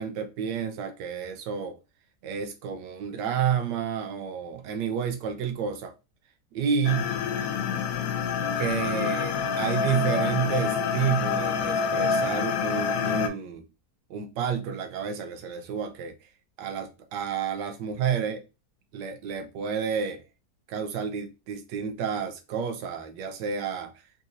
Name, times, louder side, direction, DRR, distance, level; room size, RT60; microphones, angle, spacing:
voice 1, 0.0-1.8 2.2-5.9 6.5-7.1 8.6-13.6 14.1-16.3 16.6-18.4 18.9-20.2 20.7-23.9, right 7 dB, 85° right, 1.2 m, -30 dB
sound 1, 6.8-13.3, left 6 dB, 70° left, 1.0 m, -27 dB
3.9 x 2.7 x 2.5 m
omnidirectional pair, 1.8 m